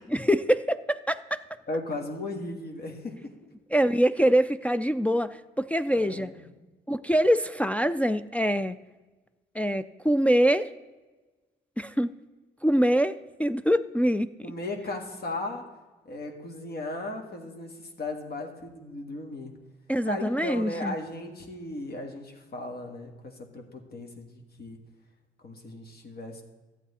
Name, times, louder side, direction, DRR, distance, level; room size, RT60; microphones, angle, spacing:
voice 1, 0.2-1.4 3.7-6.3 6.9-8.8 9.6-10.7 11.8-12.1 12.6-14.3 19.9-21.0, equal, 5° left, 9 dB, 0.3 m, -24 dB
voice 2, 1.7-3.3 5.9-6.5 14.4-15.6 16.0-19.5 20.0-24.8 25.4-26.4, left 2 dB, 50° left, 3 dB, 1.7 m, -36 dB
12.5 x 8.3 x 4.2 m, 1.2 s
cardioid pair, 90°, 20 cm